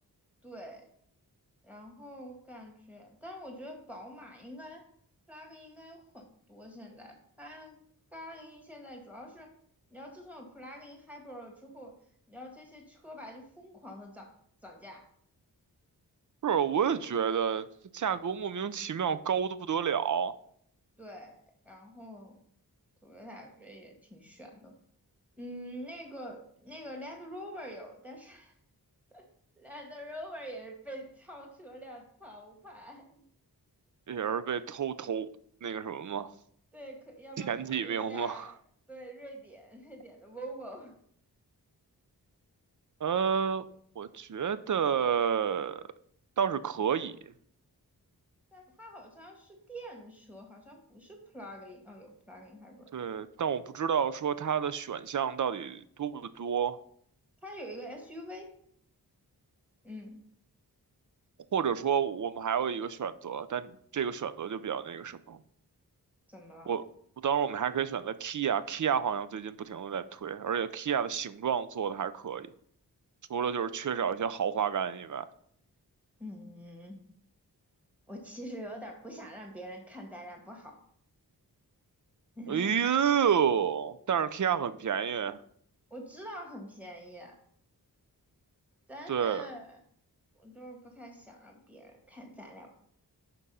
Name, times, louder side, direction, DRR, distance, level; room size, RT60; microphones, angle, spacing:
voice 1, 0.4-0.8 1.6-4.9 5.3-7.8 8.1-9.5 9.9-11.9 12.3-14.3 14.6-15.1 21.0-22.4 23.0-24.7 25.4-28.5 29.1-29.2 29.6-33.2 36.7-38.5 38.9-40.9 48.5-52.9 57.4-58.5 59.8-60.2 66.3-66.7 76.2-77.0 78.1-80.8 82.4-82.8 85.9-87.3 88.9-89.8 90.3-92.7, equal, 5° right, 1.9 m, -46 dB
voice 2, 16.4-17.6 17.9-20.3 34.1-35.3 35.6-36.3 37.4-38.5 43.0-43.7 44.0-45.8 46.4-47.3 52.9-56.8 61.5-65.4 66.7-66.8 67.2-72.5 73.3-75.3 82.5-85.4 89.1-89.5, right 7 dB, 50° right, 0.5 m, -30 dB
6.0 x 5.4 x 5.5 m
wide cardioid pair, 105°, 38 cm